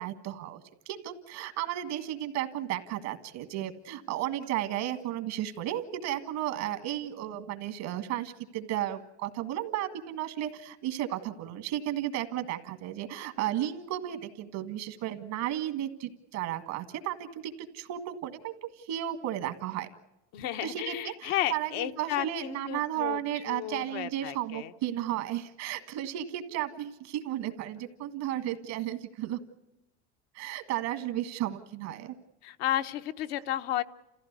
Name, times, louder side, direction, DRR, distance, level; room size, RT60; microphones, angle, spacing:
voice 1, 0.0-19.9 20.6-29.4 30.4-32.2, right 12 dB, 75° right, 9 dB, 1.8 m, -34 dB
voice 2, 20.3-23.2 23.4-24.7 32.4-33.8, left 13 dB, 80° left, 9 dB, 1.0 m, -33 dB
29.0 x 15.5 x 8.2 m, 0.93 s
supercardioid pair, 95°, 31 cm